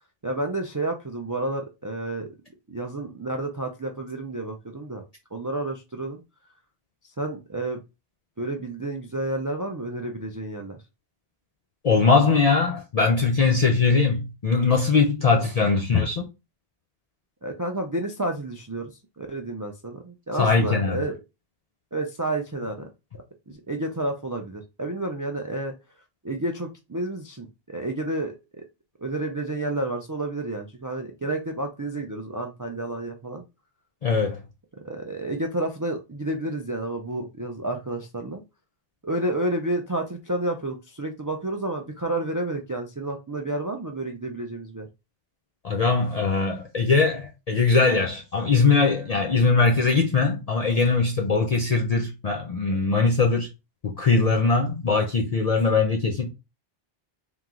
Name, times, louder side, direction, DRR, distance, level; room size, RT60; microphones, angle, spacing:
voice 1, 0.2-2.3 2.7-5.0 5.3-6.2 7.0-7.8 8.4-10.8 17.4-18.9 19.2-21.2 21.9-22.9 23.5-25.7 26.2-28.6 29.0-33.4 34.8-38.4 39.0-44.9, right 2 dB, 30° right, 0.3 m, -30 dB
voice 2, 11.8-16.2 20.3-21.0 34.0-34.4 45.6-53.5 53.8-56.3, left 4 dB, 45° left, 0.6 m, -21 dB
3.6 x 3.0 x 3.7 m
omnidirectional pair, 1.0 m